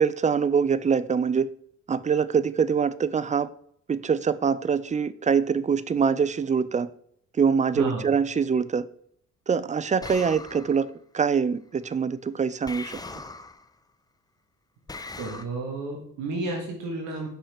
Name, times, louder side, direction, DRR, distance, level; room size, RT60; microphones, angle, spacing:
voice 1, 0.0-1.5 1.9-3.5 3.9-6.9 7.4-8.9 9.5-13.0, right 6 dB, 25° right, 0.4 m, -24 dB
sound 1, 10.0-10.9 12.7-13.7 14.9-15.4, left 3 dB, 15° left, 0.6 m, -39 dB
voice 2, 15.2-17.3, right 3 dB, 80° right, 1.6 m, -31 dB
5.7 x 5.6 x 4.3 m
supercardioid pair, 60°, 29 cm